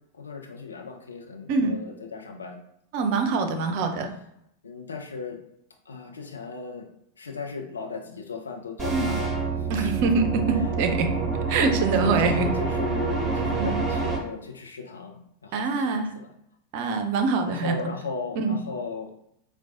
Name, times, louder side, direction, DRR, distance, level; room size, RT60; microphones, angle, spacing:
voice 1, 0.1-2.6 3.4-3.8 4.6-5.4 5.9-6.9 7.2-9.3 9.6-9.9 10.5-10.7 12.0-16.3 17.5-19.1, left 4 dB, 70° left, 2 dB, 0.5 m, -36 dB
voice 2, 2.9-4.1 8.9-9.1 9.7-11.1 11.5-12.5 13.6-13.8 15.5-16.1 16.7-17.7 18.4-18.5, right 4 dB, 45° right, 6 dB, 0.5 m, -24 dB
sound 1, 8.8-14.2, right 4 dB, 15° right, 1.4 m, -27 dB
4.5 x 2.2 x 2.5 m, 0.76 s
figure-of-eight pair, 90°, 0 cm